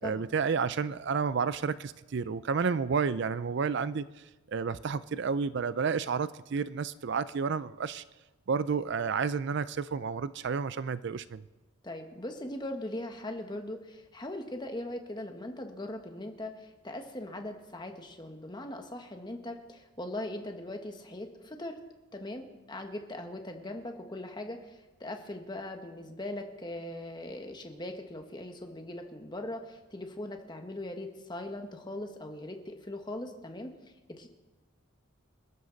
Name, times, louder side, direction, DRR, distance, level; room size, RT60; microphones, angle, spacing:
voice 1, 0.0-4.1 4.5-8.0 8.5-11.4, right 5 dB, 55° right, 15 dB, 0.4 m, -31 dB
voice 2, 11.8-21.8 22.1-33.7 34.2-34.3, left 1 dB, 20° left, 4 dB, 1.4 m, -40 dB
27.5 x 13.0 x 4.0 m, 1.1 s
head